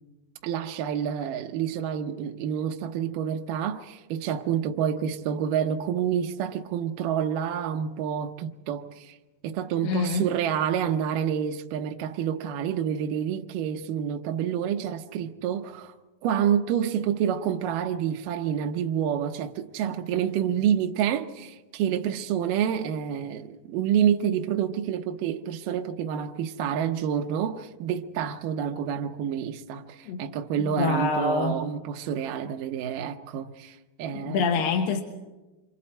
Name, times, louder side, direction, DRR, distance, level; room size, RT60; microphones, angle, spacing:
voice 1, 0.4-9.2 9.4-16.0 16.2-34.6, right 9 dB, 75° right, 2.3 m, -28 dB
voice 2, 9.8-10.3 30.1-30.3 30.6-31.5 34.1-35.0, left 4 dB, 75° left, 2.8 m, -26 dB
28.0 x 25.5 x 4.3 m
omnidirectional pair, 4.2 m